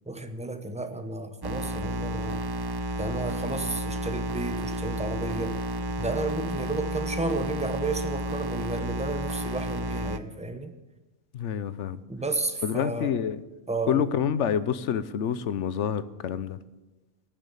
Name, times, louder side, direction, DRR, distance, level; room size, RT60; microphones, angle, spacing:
voice 1, 0.1-2.4 3.0-5.6 6.0-10.7 12.1-13.2 13.7-14.1, right 2 dB, 5° right, 8 dB, 0.9 m, -32 dB
sound 1, 1.4-10.2, right 1 dB, 35° right, 0.4 m, -31 dB
voice 2, 11.3-12.0 12.6-13.4 13.9-16.6, left 8 dB, 70° left, 15 dB, 1.0 m, -27 dB
18.0 x 7.3 x 8.4 m, 1.1 s
omnidirectional pair, 1.3 m